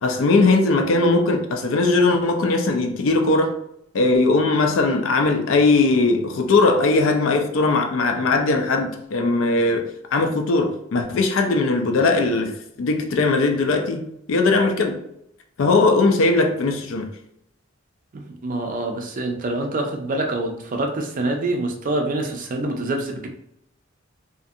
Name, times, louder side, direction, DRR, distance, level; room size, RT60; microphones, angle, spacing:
voice 1, 0.0-3.5 3.9-15.0 15.6-17.1, left 3 dB, 70° left, 5 dB, 0.4 m, -19 dB
voice 2, 18.1-23.3, right 2 dB, 40° right, 3 dB, 0.4 m, -26 dB
2.5 x 2.4 x 2.6 m, 0.76 s
head